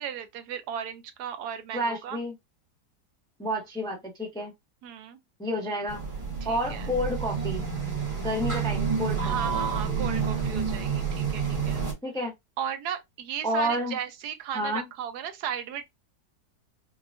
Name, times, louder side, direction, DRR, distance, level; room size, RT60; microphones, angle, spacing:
voice 1, 0.0-2.2 4.8-5.2 6.4-6.9 9.2-11.8 12.6-15.8, right 9 dB, 75° right, 1.1 m, -35 dB
voice 2, 1.7-2.3 3.4-4.5 5.4-6.0 6.4-7.6 8.2-9.4 12.0-12.3 13.4-13.9 14.5-14.8, equal, 5° left, 0.5 m, -30 dB
sound 1, 5.9-11.9, right 6 dB, 20° right, 1.3 m, -29 dB
4.5 x 2.3 x 2.5 m
omnidirectional pair, 1.8 m